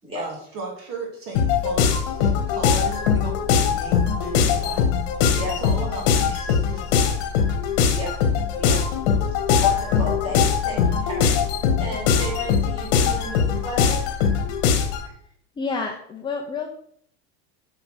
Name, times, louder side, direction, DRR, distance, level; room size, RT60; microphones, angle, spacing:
voice 1, 0.1-4.9 5.2-7.2, right 3 dB, 40° right, 1 dB, 2.3 m, -36 dB
sound 1, 1.3-15.1, left 7 dB, 60° left, 1.8 m, -21 dB
voice 2, 9.3-14.1, equal, 15° right, -4 dB, 4.4 m, -33 dB
voice 3, 15.6-16.7, left 4 dB, 15° left, 1 dB, 0.7 m, -29 dB
7.8 x 5.7 x 6.5 m, 0.63 s
supercardioid pair, 170°, 33 cm